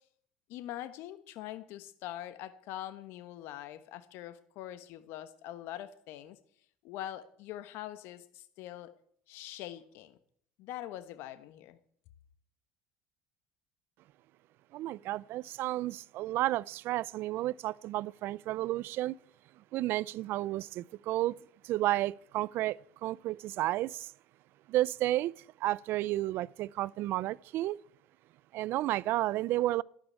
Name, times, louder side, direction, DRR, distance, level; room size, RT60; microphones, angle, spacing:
voice 1, 0.5-6.4 6.8-8.9 9.3-10.2 10.6-11.8, left 13 dB, 70° left, 1.2 m, -43 dB
voice 2, 14.7-19.2 19.7-21.4 21.6-24.1 24.7-25.3 25.6-27.8 28.5-29.8, right 15 dB, 60° right, 0.5 m, -32 dB
12.0 x 12.0 x 8.5 m
hypercardioid pair, 80°, 4 cm